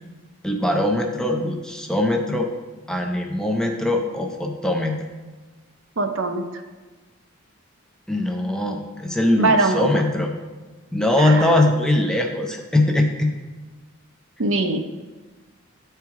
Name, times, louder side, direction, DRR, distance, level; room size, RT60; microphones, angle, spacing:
voice 1, 0.4-2.5 2.9-5.0 8.1-10.3 10.9-13.3, left 1 dB, 5° left, 2 dB, 0.5 m, -21 dB
voice 2, 6.0-6.4 9.3-10.0 11.2-11.6 14.4-14.8, right 3 dB, 65° right, 5 dB, 0.6 m, -22 dB
10.5 x 4.5 x 3.5 m, 1.3 s
head